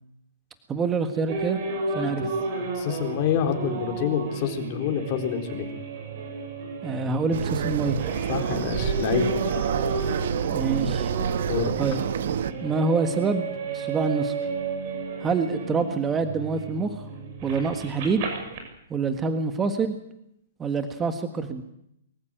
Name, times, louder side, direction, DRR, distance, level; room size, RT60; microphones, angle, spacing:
voice 1, 0.7-1.6 1.9-2.3 6.8-8.0 10.5-11.1 11.8-12.0 12.6-13.5 13.7-14.3 15.2-17.0 17.4-18.3 18.9-20.0 20.6-21.6, right 4 dB, 15° right, 8 dB, 1.6 m, -26 dB
sound 1, 1.3-18.6, right 3 dB, 40° right, 6.8 m, -33 dB
voice 2, 1.9-2.3 2.6-5.7 8.3-9.3 11.4-11.7, left 8 dB, 35° left, 4 dB, 4.0 m, -27 dB
sound 2, 7.3-12.5, right 8 dB, 65° right, 1.2 m, -28 dB
23.5 x 15.0 x 9.0 m, 0.76 s
hypercardioid pair, 145°, 0 cm